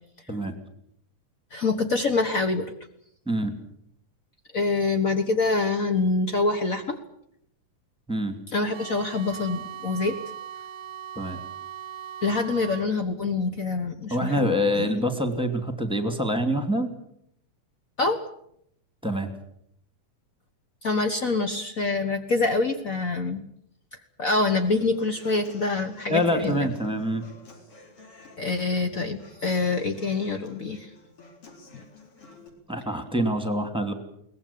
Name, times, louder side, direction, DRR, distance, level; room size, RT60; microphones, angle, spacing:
voice 1, 1.5-2.7 4.5-7.0 8.5-10.2 12.2-15.0 18.0-18.2 20.8-23.4 24.2-26.7 28.4-30.9 31.7-31.8, left 3 dB, 70° left, 7 dB, 0.7 m, -26 dB
sound 1, 8.7-12.9, right 10 dB, 60° right, 1.8 m, -39 dB
voice 2, 14.1-16.9 19.0-19.3 26.1-27.2 32.7-33.9, equal, ahead, 7 dB, 2.1 m, -25 dB
Human voice / Acoustic guitar, 24.5-32.5, left 2 dB, 45° left, 4.8 m, -50 dB
22.5 x 19.0 x 8.6 m, 0.72 s
omnidirectional pair, 3.7 m